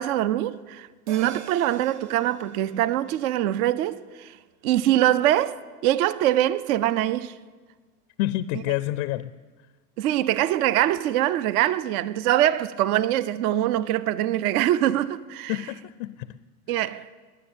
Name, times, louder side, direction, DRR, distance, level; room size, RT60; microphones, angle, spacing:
voice 1, 0.0-4.4 4.6-7.3 10.0-15.5 16.7-17.1, right 13 dB, 65° right, 0.7 m, -23 dB
sound 1, 1.1-5.8 6.1-6.2, right 9 dB, 40° right, 1.2 m, -48 dB
voice 2, 8.2-9.3 15.5-16.3 16.7-17.0, left 15 dB, 40° left, 0.4 m, -29 dB
20.5 x 7.4 x 8.7 m
supercardioid pair, 145°, 46 cm